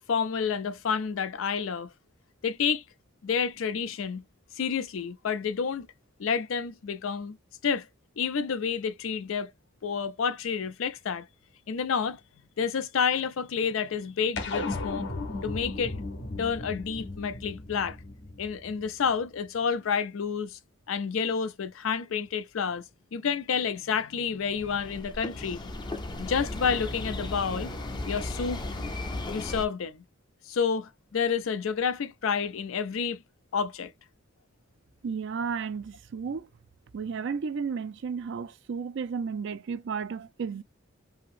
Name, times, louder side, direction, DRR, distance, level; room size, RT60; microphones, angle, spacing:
voice 1, 0.1-1.9 2.4-2.8 3.2-4.2 4.5-5.9 6.2-7.4 7.6-7.9 8.2-9.5 9.8-11.3 11.7-12.2 12.6-15.1 15.4-16.0 16.4-18.0 18.4-20.6 20.9-22.8 23.1-25.6 26.2-27.7 28.1-28.6 29.3-30.0 30.5-33.2 33.5-33.9, left 6 dB, 80° left, 0.5 m, -29 dB
sound 1, 14.4-19.1, left 2 dB, 60° left, 0.8 m, -35 dB
sound 2, 24.5-29.6, left 2 dB, 20° left, 0.5 m, -35 dB
voice 2, 35.0-36.5 36.9-40.6, right 5 dB, 65° right, 0.4 m, -33 dB
2.8 x 2.8 x 2.5 m
head